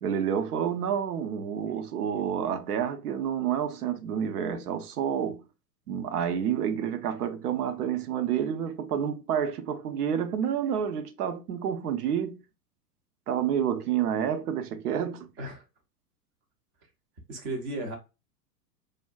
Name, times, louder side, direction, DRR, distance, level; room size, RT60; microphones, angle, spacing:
voice 1, 0.0-5.4 5.9-12.4 13.3-15.3, right 8 dB, 65° right, 0.6 m, -29 dB
voice 2, 17.3-18.0, right 2 dB, 20° right, 0.4 m, -34 dB
3.4 x 2.2 x 2.3 m
figure-of-eight pair, 95°, 49 cm